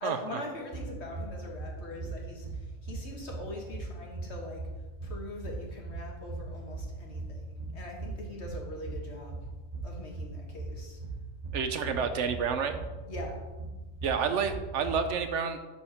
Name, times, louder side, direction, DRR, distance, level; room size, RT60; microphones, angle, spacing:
voice 1, 0.0-4.6 5.0-9.4 9.8-11.0 13.1-13.4, left 2 dB, 55° left, 0 dB, 1.7 m, -42 dB
sound 1, 0.7-15.0, right 3 dB, 35° right, 1.2 m, -40 dB
voice 2, 11.5-12.8 14.0-15.6, right 6 dB, 70° right, 8 dB, 1.0 m, -29 dB
10.5 x 4.4 x 4.4 m, 1.2 s
omnidirectional pair, 1.3 m